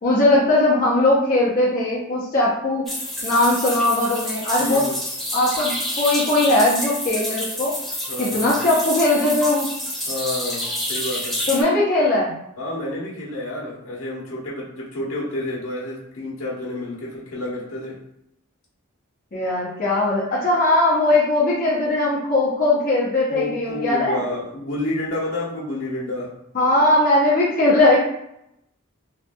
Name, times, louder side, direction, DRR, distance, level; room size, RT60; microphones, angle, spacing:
voice 1, 0.0-2.8 3.2-4.8 5.3-7.7 8.2-9.7 11.5-12.3 19.3-24.2 26.5-28.0, left 2 dB, 40° left, -6 dB, 0.7 m, -19 dB
sound 1, 2.9-11.6, left 1 dB, ahead, 0.7 m, -28 dB
voice 2, 4.6-5.0 8.1-8.5 10.1-11.4 12.6-18.0 23.3-26.3, left 1 dB, 80° left, -6 dB, 1.2 m, -29 dB
3.2 x 2.8 x 2.2 m, 0.79 s
head